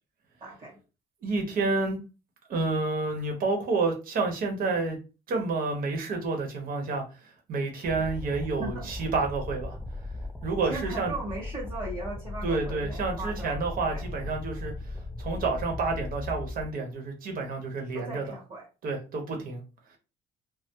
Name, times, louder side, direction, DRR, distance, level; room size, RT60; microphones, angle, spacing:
voice 1, 0.4-0.8 8.6-8.8 10.6-13.6 13.9-14.3 17.9-18.7, right 2 dB, 30° right, 1.6 m, -38 dB
voice 2, 1.2-2.0 2.5-5.0 5.3-7.0 7.5-9.8 10.4-11.1 12.4-14.7 15.2-18.2 18.8-19.6, right 3 dB, 55° right, 1.0 m, -29 dB
sound 1, 7.8-16.7, left 2 dB, 5° left, 0.4 m, -37 dB
3.2 x 2.0 x 2.9 m
cardioid pair, 110°, 17 cm